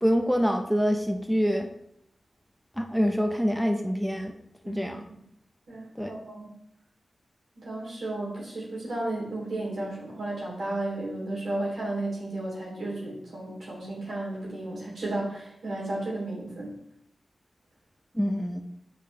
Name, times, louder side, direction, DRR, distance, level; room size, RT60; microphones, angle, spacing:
voice 1, 0.0-1.7 2.8-4.4 4.7-5.0 6.0-6.2 18.1-18.6, equal, ahead, 5 dB, 0.6 m, -26 dB
voice 2, 5.7-6.5 7.5-16.7, right 2 dB, 85° right, -5 dB, 3.1 m, -33 dB
8.1 x 5.2 x 3.3 m, 0.75 s
wide cardioid pair, 70°, 0 cm